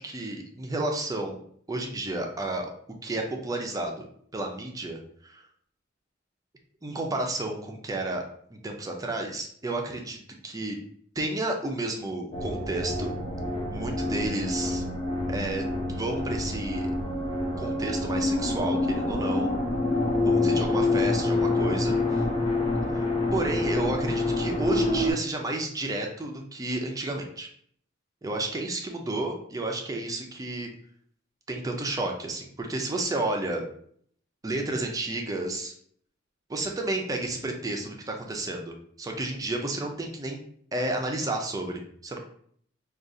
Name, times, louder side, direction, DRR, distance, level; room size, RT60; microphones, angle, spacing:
voice 1, 0.0-1.4 1.7-2.7 3.0-4.1 4.3-5.4 6.8-8.2 8.5-10.2 10.4-10.8 11.2-13.1 13.7-14.9 15.3-16.9 17.6-19.5 20.2-22.0 22.9-23.0 23.3-27.5 28.2-30.7 31.5-33.6 34.4-35.7 36.5-40.4 40.7-42.2, right 2 dB, 20° right, 2 dB, 0.4 m, -31 dB
sound 1, 12.3-25.1, left 2 dB, 30° left, 0.6 m, -27 dB
4.8 x 2.3 x 2.6 m, 0.62 s
head